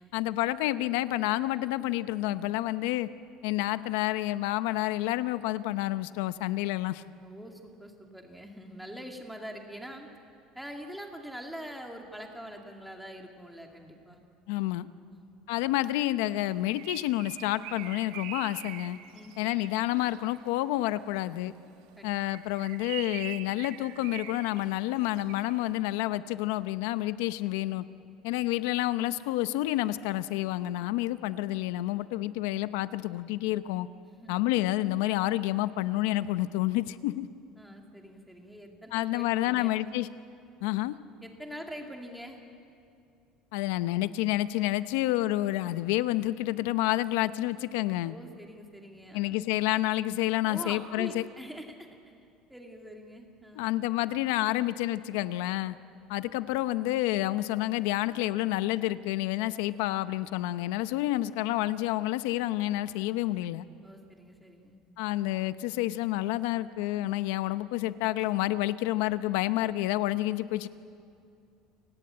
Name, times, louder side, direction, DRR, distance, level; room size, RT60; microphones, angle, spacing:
voice 1, 0.0-3.1 3.4-7.0 14.5-14.9 15.5-19.0 19.4-21.5 22.0-27.8 28.2-33.9 34.3-37.3 38.9-40.1 40.6-41.0 43.5-48.1 49.1-51.2 53.6-55.8 56.1-63.6 65.0-70.7, left 16 dB, 80° left, 13 dB, 0.8 m, -29 dB
voice 2, 7.2-10.1 10.5-14.2 15.1-15.4 19.1-19.5 22.0-22.1 34.0-34.4 37.6-40.0 41.2-42.4 48.0-49.3 50.5-52.1 52.5-53.7 63.8-64.8, equal, ahead, 2 dB, 2.2 m, -44 dB
Bird, 16.4-20.5 22.1-25.6, right 12 dB, 75° right, 1.7 m, -44 dB
29.0 x 18.5 x 8.8 m, 2.5 s
cardioid pair, 170°, 0 cm